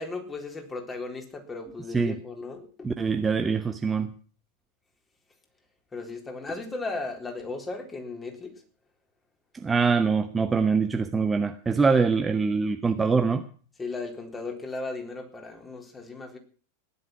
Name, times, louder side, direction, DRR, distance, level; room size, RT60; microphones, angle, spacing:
voice 1, 0.0-2.9 5.9-8.5 13.8-16.4, left 3 dB, 15° left, 3.9 m, -36 dB
voice 2, 2.8-4.1 9.5-13.4, right 5 dB, 15° right, 1.0 m, -24 dB
16.5 x 11.0 x 5.9 m
figure-of-eight pair, 90°, 0 cm